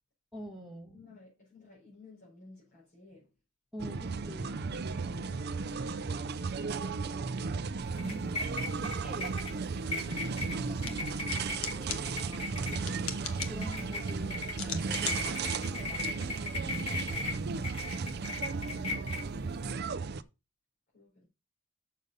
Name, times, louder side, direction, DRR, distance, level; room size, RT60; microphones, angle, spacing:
voice 1, 0.3-1.0 3.7-4.8 6.5-7.4 7.9-8.3 8.7-12.6 13.4-17.5, equal, ahead, 1.6 m, -48 dB
voice 2, 0.9-3.3 12.5-13.2 20.9-21.3, left 3 dB, 45° left, 4.6 m, -56 dB
sound 1, 3.8-20.2, right 4 dB, 50° right, 0.5 m, -35 dB
sound 2, 7.8-19.7, left 2 dB, 30° left, 4.3 m, -39 dB
sound 3, 10.7-16.8, left 8 dB, 80° left, 1.2 m, -43 dB
6.7 x 6.6 x 5.4 m
head